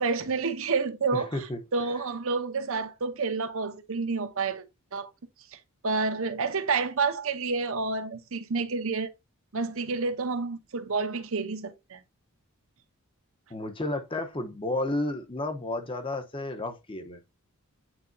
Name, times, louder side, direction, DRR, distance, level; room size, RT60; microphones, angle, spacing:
voice 1, 0.0-4.6 4.9-5.1 5.5-9.1 9.5-12.0, right 4 dB, 65° right, 0.8 m, -29 dB
voice 2, 1.1-1.6 13.5-17.2, left 2 dB, 25° left, 0.8 m, -32 dB
8.8 x 4.0 x 2.6 m
head